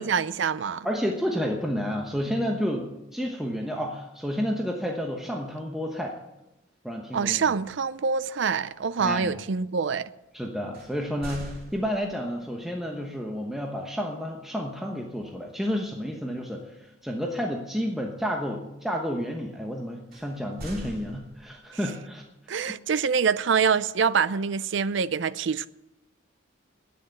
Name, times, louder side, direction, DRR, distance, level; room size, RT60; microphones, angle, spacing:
voice 1, 0.0-0.9 7.1-10.1 22.5-25.7, right 6 dB, 65° right, 0.5 m, -25 dB
voice 2, 0.8-6.1 6.8-7.5 9.0-9.4 10.3-22.8, equal, ahead, 1.1 m, -31 dB
sound 1, 10.7-12.4 15.1-15.4 15.9-16.1 20.1-21.8, equal, 50° right, 3.0 m, -42 dB
11.5 x 9.4 x 9.2 m
head